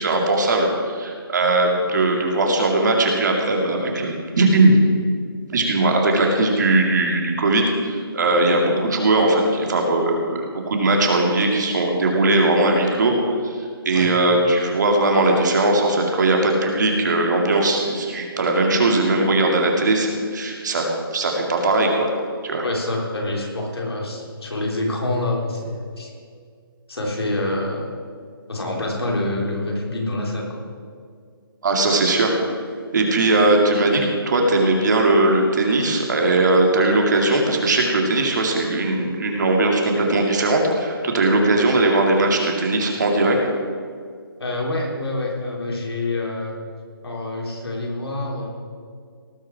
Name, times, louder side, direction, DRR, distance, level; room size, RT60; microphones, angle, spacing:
voice 1, 0.0-4.8 5.5-20.9 21.1-22.1 22.4-22.6 31.6-32.3 32.9-43.4, right 2 dB, 50° right, 1 dB, 2.4 m, -19 dB
voice 2, 22.6-26.1 26.9-27.9 28.5-30.6 44.4-46.6 47.0-48.5, left 2 dB, 90° left, -1 dB, 3.6 m, -26 dB
18.0 x 6.5 x 6.0 m, 2.1 s
hypercardioid pair, 165°, 13 cm